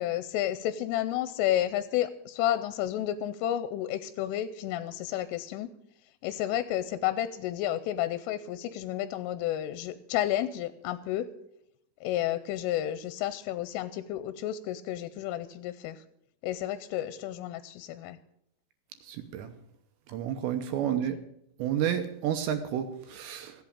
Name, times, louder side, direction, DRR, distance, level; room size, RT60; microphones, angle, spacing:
voice 1, 0.0-5.7 6.2-11.3 12.0-16.0 16.4-18.2, left 12 dB, 85° left, 13 dB, 3.1 m, -31 dB
voice 2, 19.1-19.5 20.1-21.2 21.6-23.5, right 9 dB, 75° right, 8 dB, 2.7 m, -30 dB
15.5 x 8.2 x 8.6 m, 0.78 s
omnidirectional pair, 5.8 m